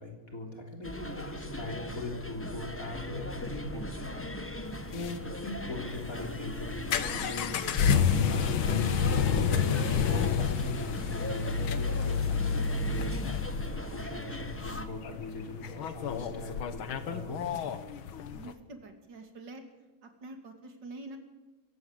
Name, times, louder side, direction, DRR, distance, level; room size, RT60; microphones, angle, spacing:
voice 1, 0.0-4.6 4.9-13.1 13.5-17.4, left 2 dB, 40° left, 2 dB, 3.7 m, -40 dB
sound 1, 0.8-14.9, left 1 dB, 10° left, 0.8 m, -39 dB
sound 2, 4.7-18.5, left 6 dB, 80° left, 2.0 m, -30 dB
voice 2, 18.3-19.6 20.0-21.2, right 2 dB, 60° right, 6 dB, 3.2 m, -46 dB
24.5 x 15.5 x 8.0 m, 1.2 s
omnidirectional pair, 2.2 m